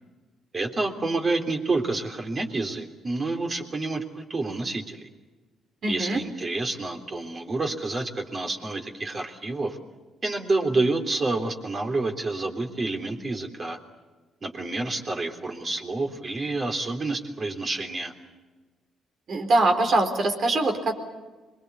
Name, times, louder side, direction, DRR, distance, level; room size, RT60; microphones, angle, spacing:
voice 1, 0.5-5.1 5.9-9.8 10.2-13.8 14.4-18.1, right 2 dB, 35° right, 4 dB, 3.4 m, -28 dB
voice 2, 5.8-6.2 19.3-20.9, right 2 dB, 55° right, 4 dB, 4.2 m, -23 dB
26.0 x 21.5 x 8.3 m, 1.3 s
cardioid pair, 90°, 0 cm